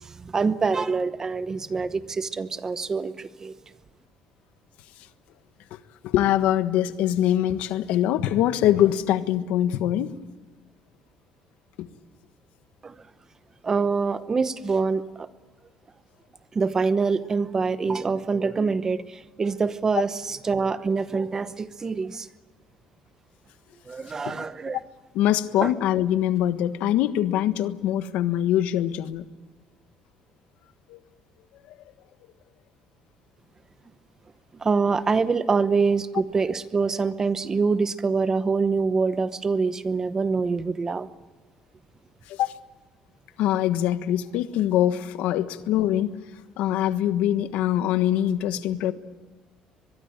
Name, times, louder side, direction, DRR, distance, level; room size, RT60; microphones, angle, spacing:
voice 1, 0.3-3.5 12.8-12.9 13.6-15.3 16.5-22.3 23.9-24.8 25.6-25.7 34.6-41.1, right 4 dB, 20° right, 13 dB, 0.9 m, -25 dB
voice 2, 6.0-10.1 11.8-11.9 24.2-24.5 25.1-29.3 30.9-31.0 42.3-42.6 43.4-46.2 46.6-48.9, left 12 dB, 80° left, 11 dB, 1.4 m, -23 dB
24.0 x 22.0 x 9.0 m, 1.3 s
cardioid pair, 145°, 2 cm